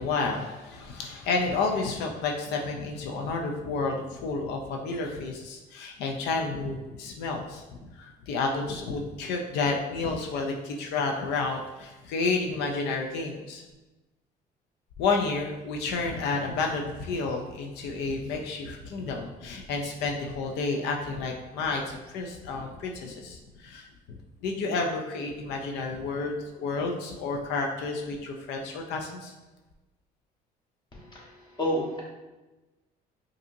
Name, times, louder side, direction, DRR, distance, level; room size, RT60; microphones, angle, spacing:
voice 1, 0.0-7.6 7.9-13.6 15.0-23.9 24.4-29.3, left 3 dB, 85° left, 2 dB, 0.5 m, -30 dB
voice 2, 30.9-32.0, equal, 25° left, -4 dB, 1.3 m, -31 dB
5.1 x 2.7 x 2.6 m, 1.1 s
cardioid pair, 110°, 17 cm